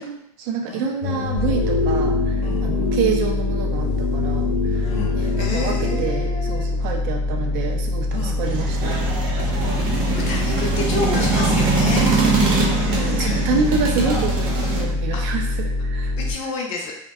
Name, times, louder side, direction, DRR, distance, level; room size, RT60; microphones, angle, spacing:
voice 1, 0.0-9.0 12.8-16.1, right 5 dB, 45° right, 2 dB, 0.4 m, -27 dB
sound 1, 1.0-6.1, left 5 dB, 90° left, 0.4 m, -25 dB
sound 2, 1.3-16.3, left 2 dB, 5° right, 0.6 m, -24 dB
voice 2, 4.9-6.7 8.1-8.4 9.5-12.1 12.9-13.6 15.1-15.4 16.2-16.9, left 3 dB, 40° left, -1 dB, 0.5 m, -30 dB
sound 3, 8.4-14.8, right 3 dB, 80° right, 0.7 m, -22 dB
2.6 x 2.1 x 2.3 m, 0.74 s
supercardioid pair, 155°, 17 cm